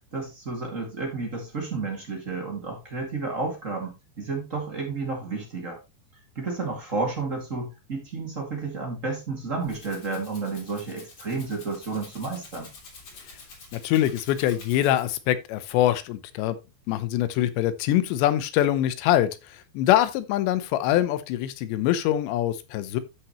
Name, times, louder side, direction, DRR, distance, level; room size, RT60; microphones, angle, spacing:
voice 1, 0.1-5.8 6.3-12.7, right 3 dB, 30° right, 1.4 m, -31 dB
Rattle (instrument), 9.3-15.3, left 3 dB, 40° left, 3.4 m, -48 dB
voice 2, 13.7-16.6 16.9-23.0, left 13 dB, 85° left, 3.0 m, -24 dB
13.0 x 6.0 x 3.0 m
omnidirectional pair, 5.1 m